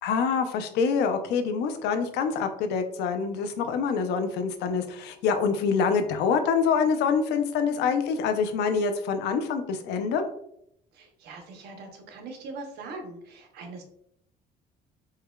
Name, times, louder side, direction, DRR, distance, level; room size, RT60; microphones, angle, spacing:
voice 1, 0.0-10.2, left 5 dB, 85° left, 7 dB, 0.5 m, -26 dB
voice 2, 10.9-13.8, right 3 dB, 75° right, 3 dB, 0.8 m, -41 dB
4.7 x 2.2 x 2.2 m, 0.73 s
cardioid pair, 110°, 17 cm